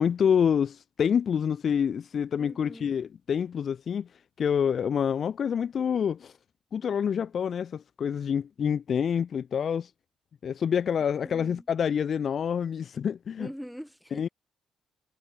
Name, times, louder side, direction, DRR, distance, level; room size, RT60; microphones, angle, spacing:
voice 1, 0.0-4.1 4.4-6.3 6.7-9.9 10.4-13.5 14.1-14.3, left 7 dB, 55° left, 0.6 m, -27 dB
voice 2, 2.4-3.0 11.2-11.6 13.4-14.3, equal, ahead, 6.0 m, -43 dB
cardioid pair, 90°, 0 cm